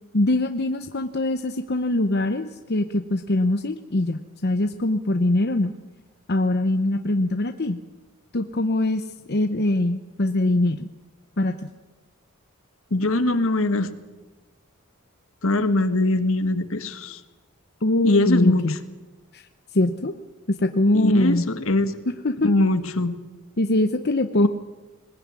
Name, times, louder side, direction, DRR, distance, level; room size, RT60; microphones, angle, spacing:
voice 1, 0.1-5.7 6.3-7.8 8.3-10.9 11.4-11.6 17.8-18.7 19.3-19.5 19.7-20.1 20.5-21.5 22.2-22.5 23.6-24.5, left 1 dB, 50° left, 7 dB, 0.8 m, -22 dB
voice 2, 12.9-13.9 15.4-17.2 18.0-18.7 20.9-22.0 22.4-23.2, left 2 dB, 65° left, 10 dB, 1.6 m, -22 dB
20.5 x 20.5 x 9.7 m, 1.2 s
head